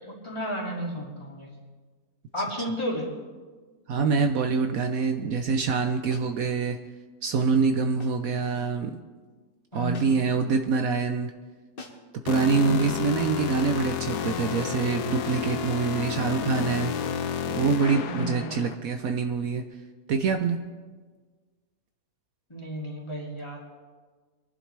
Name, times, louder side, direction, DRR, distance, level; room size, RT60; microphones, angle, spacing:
voice 1, 0.1-1.5 2.3-3.1 9.7-10.1 12.5-12.9 18.1-18.6 22.5-23.7, equal, 15° left, -3 dB, 2.5 m, -33 dB
voice 2, 3.9-6.8 7.2-9.0 9.7-11.3 12.2-16.9 17.5-19.6 20.1-20.6, right 5 dB, 65° right, 6 dB, 1.1 m, -25 dB
sound 1, 6.1-6.4 8.0-8.3 9.9-10.4 11.8-12.2 13.6-13.9 15.3-15.6, left 3 dB, 40° left, 1.3 m, -46 dB
sound 2, 12.3-18.8, left 8 dB, 90° left, 1.3 m, -31 dB
22.5 x 11.0 x 3.3 m, 1.4 s
omnidirectional pair, 1.7 m